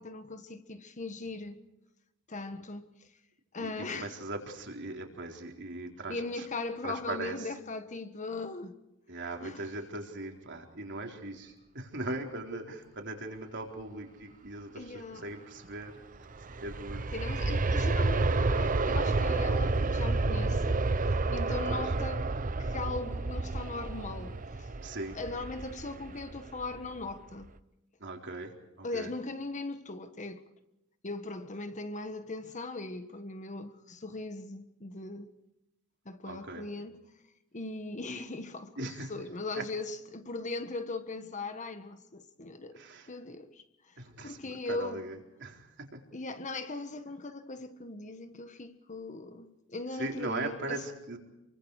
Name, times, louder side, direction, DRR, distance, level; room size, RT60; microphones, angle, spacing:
voice 1, 0.0-1.6 2.3-3.1 3.5-4.2 6.1-8.7 9.4-9.7 14.7-15.3 17.1-20.8 21.3-22.2 22.6-24.7 25.1-27.5 28.8-30.4 31.0-35.3 36.0-37.0 37.5-42.8 43.1-45.0 46.1-50.8, left 3 dB, 35° left, 1.5 m, -39 dB
voice 2, 3.6-6.5 6.8-7.5 9.1-15.9 16.6-17.1 21.5-21.8 24.8-25.2 28.0-29.1 36.2-36.6 38.8-39.1 42.7-43.1 44.0-45.9 50.0-51.2, right 2 dB, 55° right, 4.1 m, -39 dB
Aircraft, 16.1-27.0 27.4-27.5, right 3 dB, 40° right, 0.8 m, -30 dB
28.5 x 24.0 x 4.9 m
head